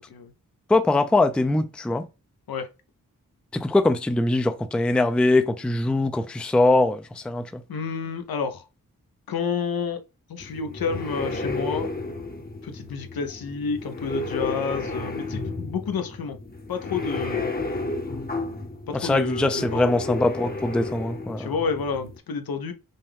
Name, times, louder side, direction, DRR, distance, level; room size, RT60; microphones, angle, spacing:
voice 1, 0.7-2.0 3.5-7.6 18.9-21.5, left 2 dB, 5° left, 0.4 m, -22 dB
voice 2, 7.7-8.7 9.3-10.0 10.3-11.9 12.6-16.4 16.7-17.5 18.9-20.0 21.4-22.7, left 6 dB, 85° left, 0.8 m, -29 dB
sound 1, 10.4-22.2, left 2 dB, 25° left, 0.8 m, -32 dB
5.4 x 2.2 x 3.4 m
wide cardioid pair, 70°, 35 cm